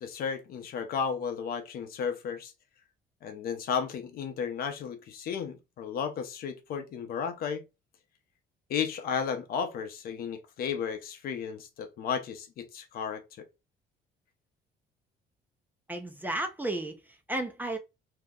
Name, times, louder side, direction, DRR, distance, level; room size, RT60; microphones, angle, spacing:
voice 1, 0.0-2.5 3.2-7.6 8.7-13.2, left 7 dB, 60° left, 0.7 m, -33 dB
voice 2, 15.9-17.8, right 1 dB, 10° right, 0.5 m, -33 dB
2.8 x 2.1 x 3.6 m
cardioid pair, 110°, 17 cm